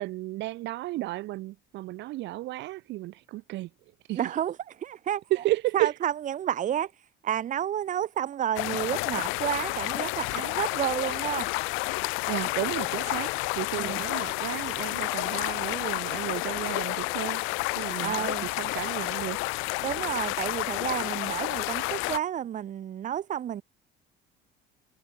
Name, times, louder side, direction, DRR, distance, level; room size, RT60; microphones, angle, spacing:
voice 1, 0.0-3.7 4.1-4.2 5.3-5.9 12.3-17.4 17.7-19.5, right 17 dB, 60° right, 2.3 m, -33 dB
voice 2, 4.1-5.2 5.7-6.9 7.2-11.5 13.8-14.0 18.0-18.5 19.8-23.6, right 10 dB, 40° right, 3.1 m, -30 dB
sound 1, 8.6-22.2, left 26 dB, 80° left, 1.1 m, -30 dB
cardioid pair, 150°, 20 cm